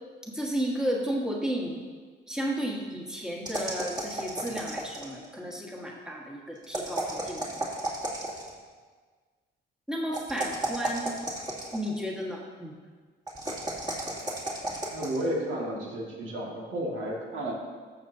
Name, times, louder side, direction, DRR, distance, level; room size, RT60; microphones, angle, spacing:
voice 1, 0.2-1.8 2.3-7.4 9.9-11.1 11.7-12.7, equal, 5° right, -3 dB, 1.6 m, -33 dB
sound 1, 3.4-5.2 6.6-8.6 10.1-12.0 13.3-15.2, right 2 dB, 20° right, 2.6 m, -33 dB
voice 2, 14.9-17.5, right 1 dB, 75° right, -2 dB, 2.1 m, -32 dB
14.0 x 6.8 x 2.8 m, 1.5 s
cardioid pair, 90°, 20 cm